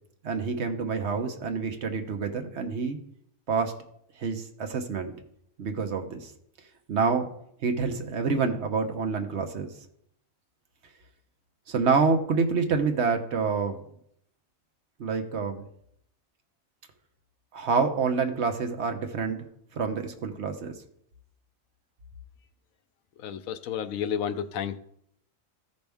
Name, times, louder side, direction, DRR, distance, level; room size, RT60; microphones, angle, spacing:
voice 1, 0.2-3.0 3.5-3.7 4.2-5.1 5.6-6.3 6.9-7.3 7.6-9.7 11.7-13.8 15.0-15.7 17.5-19.5 19.7-20.7, right 5 dB, 60° right, 1.1 m, -27 dB
voice 2, 23.2-24.8, left 8 dB, 80° left, 1.0 m, -31 dB
14.5 x 5.3 x 3.5 m
omnidirectional pair, 1.4 m